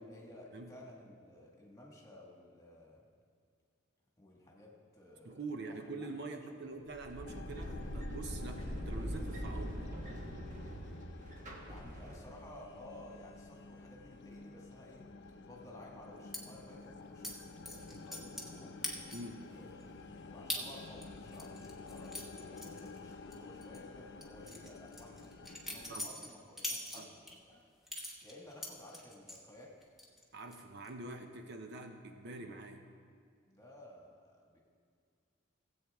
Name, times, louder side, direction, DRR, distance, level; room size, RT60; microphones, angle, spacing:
voice 1, 0.0-3.0 4.2-5.6 6.0-6.4 6.7-6.8 11.6-15.1 15.4-18.7 19.4-25.3 25.7-27.6 28.2-29.7 33.5-34.6, left 1 dB, 15° left, -2 dB, 1.8 m, -55 dB
voice 2, 5.2-9.9 19.1-19.4 25.9-26.1 26.9-27.1 30.3-32.9, right 2 dB, 60° right, 5 dB, 0.7 m, -45 dB
sound 1, 6.9-12.5, equal, 40° right, 1.3 m, -42 dB
sound 2, 7.2-26.0, left 3 dB, 60° left, 0.6 m, -51 dB
sound 3, 16.3-16.4 17.2-17.3 17.7-18.5 18.8-19.4 19.8-19.9 20.5-20.6 21.0-23.3 23.6-23.8 24.2-27.3 27.9-29.4 29.8-30.2 30.5-30.9, left 1 dB, ahead, 1.1 m, -42 dB
17.0 x 8.1 x 3.6 m, 2.2 s
head